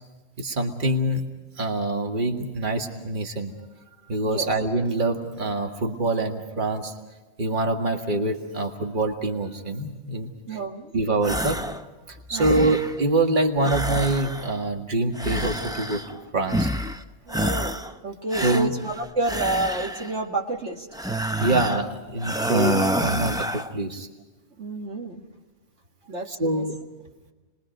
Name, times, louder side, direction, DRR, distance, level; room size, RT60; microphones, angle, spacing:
voice 1, 0.4-1.2 1.6-3.5 4.1-6.9 7.4-10.6 10.9-11.6 12.1-16.7 18.4-18.7 21.4-24.1 26.3-26.8, right 2 dB, 40° right, 3 dB, 1.9 m, -25 dB
voice 2, 10.5-10.9 12.3-12.7 17.3-20.9 24.6-25.2 26.1-26.6, right 2 dB, 60° right, 0 dB, 1.9 m, -30 dB
sound 1, 11.2-11.8 12.2-13.0 13.6-14.7 15.1-16.2 16.5-17.0 17.3-17.9 18.3-20.2 20.9-21.9 22.2-23.7, equal, 5° right, 0.5 m, -28 dB
30.0 x 21.5 x 5.3 m, 1.2 s
omnidirectional pair, 1.3 m